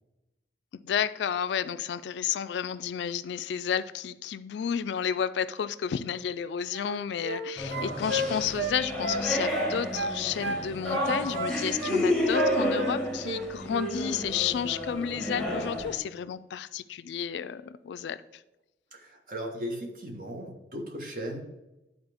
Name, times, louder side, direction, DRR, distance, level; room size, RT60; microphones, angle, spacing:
voice 1, 0.7-18.2, left 8 dB, 75° left, 14 dB, 0.3 m, -31 dB
sound 1, 6.7-7.4 7.7-9.2 9.5-10.6 10.9-12.0 12.3-13.4 13.7-14.0, right 1 dB, 65° right, 0.8 m, -32 dB
sound 2, 7.6-16.0, equal, 5° left, 1.2 m, -31 dB
voice 2, 18.9-21.4, equal, 50° right, 1 dB, 1.3 m, -37 dB
10.5 x 4.1 x 3.5 m, 0.98 s
head